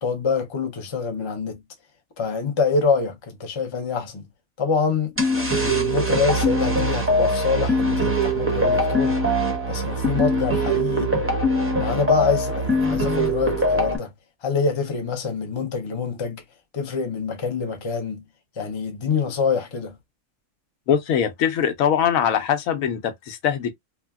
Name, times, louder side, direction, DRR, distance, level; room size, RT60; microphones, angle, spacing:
voice 1, 0.0-1.6 2.2-4.2 4.6-9.2 9.7-11.1 11.8-14.1 14.4-16.4 16.7-18.2 18.6-19.9, left 5 dB, 40° left, 0.4 m, -25 dB
sound 1, 5.2-14.0, equal, 15° right, 0.5 m, -22 dB
voice 2, 20.9-23.7, left 8 dB, 80° left, 1.0 m, -22 dB
3.3 x 2.2 x 2.2 m
omnidirectional pair, 1.4 m